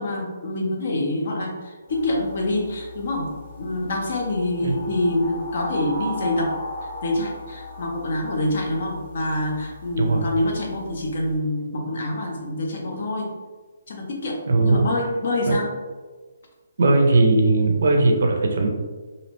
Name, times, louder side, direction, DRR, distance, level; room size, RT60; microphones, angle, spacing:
voice 1, 0.0-6.6 7.0-13.3 13.9-15.7, left 1 dB, 40° left, 1 dB, 0.5 m, -26 dB
sound 1, 1.9-11.4, left 1 dB, 10° right, 0.6 m, -37 dB
voice 2, 10.0-10.3 14.5-14.9 15.5-15.6 16.8-18.7, right 2 dB, 50° right, 3 dB, 0.4 m, -18 dB
2.6 x 2.0 x 2.9 m, 1.3 s
hypercardioid pair, 175°, 0 cm